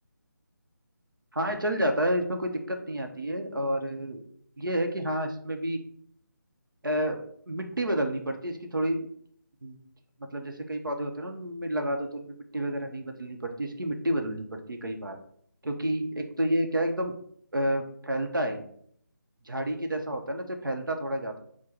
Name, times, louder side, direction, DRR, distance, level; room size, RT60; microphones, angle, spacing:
voice 1, 1.3-4.2 4.6-5.8 6.8-9.0 9.6-9.8 10.3-15.2 15.6-17.2 17.5-18.7 19.4-21.4, right 1 dB, 80° right, 4 dB, 0.8 m, -30 dB
4.3 x 2.2 x 4.6 m, 0.64 s
figure-of-eight pair, 160°, 11 cm